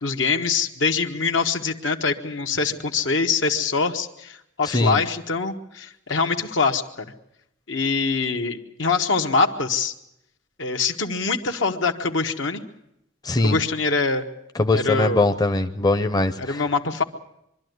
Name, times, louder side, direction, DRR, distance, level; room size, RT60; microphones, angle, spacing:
voice 1, 0.0-6.8 7.7-9.9 10.6-12.6 13.4-14.2 14.7-15.2 16.4-17.0, left 4 dB, 80° left, 5 dB, 1.5 m, -24 dB
voice 2, 4.7-5.0 13.2-13.6 14.5-16.6, left 2 dB, 20° left, 8 dB, 0.7 m, -21 dB
24.0 x 12.5 x 9.5 m, 0.82 s
head